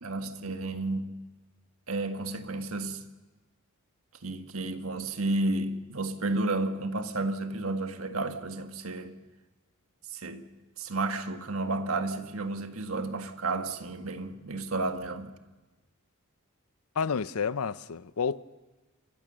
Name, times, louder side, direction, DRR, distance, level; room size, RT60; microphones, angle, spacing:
voice 1, 0.0-1.2 1.9-3.0 4.2-9.2 10.1-10.5 10.8-15.3, right 2 dB, 70° right, 1.6 m, -32 dB
voice 2, 17.0-18.4, left 6 dB, 85° left, 0.6 m, -30 dB
29.5 x 15.0 x 6.9 m
head